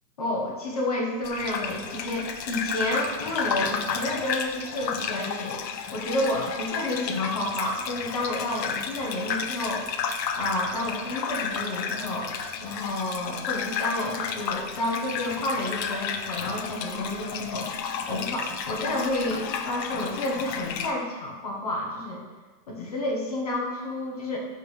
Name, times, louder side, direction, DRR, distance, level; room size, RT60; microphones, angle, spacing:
voice 1, 0.2-5.6 5.9-9.9 10.3-17.7 18.1-22.2 22.7-24.4, left 1 dB, 25° left, -2 dB, 0.6 m, -30 dB
Gurgling / Bathtub (filling or washing), 1.2-20.9, left 6 dB, 90° left, 0.7 m, -32 dB
5.6 x 3.2 x 5.4 m, 1.3 s
hypercardioid pair, 165°, 49 cm